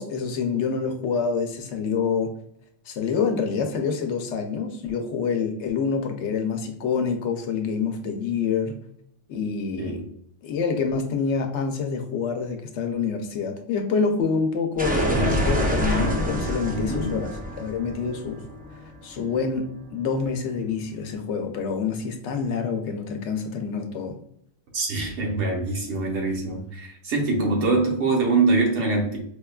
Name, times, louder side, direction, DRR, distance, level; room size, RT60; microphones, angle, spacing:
voice 1, 0.0-2.3 2.9-8.8 9.3-10.0 10.4-18.4 19.0-24.2, left 5 dB, 80° left, 5 dB, 0.9 m, -27 dB
sound 1, 14.8-19.5, equal, 15° right, 0.3 m, -26 dB
voice 2, 16.7-17.1 24.7-29.2, right 3 dB, 80° right, 0 dB, 1.2 m, -24 dB
4.8 x 2.3 x 2.3 m, 0.69 s
omnidirectional pair, 1.2 m